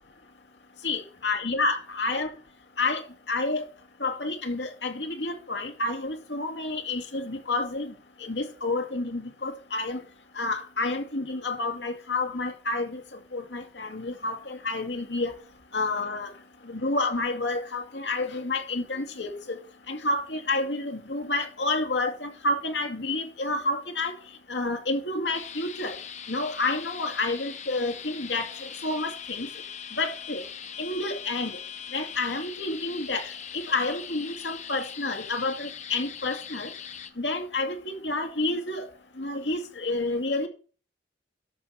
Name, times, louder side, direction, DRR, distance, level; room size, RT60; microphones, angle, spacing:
voice 1, 0.8-2.3 2.8-3.6 4.0-7.9 8.2-10.0 10.4-15.3 15.7-16.3 16.6-19.6 19.9-24.1 24.5-26.0 26.3-29.5 29.9-30.4 30.8-31.6 31.9-36.7 37.2-38.9 39.2-40.5, left 2 dB, 65° left, 2.3 m, -29 dB
sound 1, 25.3-37.1, left 8 dB, 40° left, 0.9 m, -41 dB
12.5 x 5.8 x 5.7 m
head